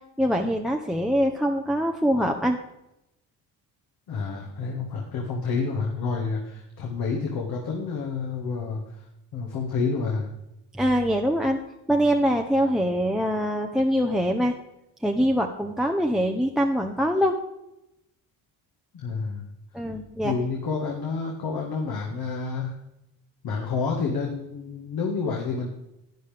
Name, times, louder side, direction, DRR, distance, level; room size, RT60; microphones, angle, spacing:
voice 1, 0.2-2.6 10.7-11.6 11.9-14.5 15.0-17.3 19.7-20.3, equal, ahead, 1 dB, 0.8 m, -23 dB
voice 2, 4.1-8.8 9.3-10.3 18.9-19.4 20.2-22.7 23.4-25.7, left 4 dB, 60° left, -1 dB, 1.8 m, -29 dB
12.5 x 9.1 x 3.5 m, 0.88 s
supercardioid pair, 70°, 41 cm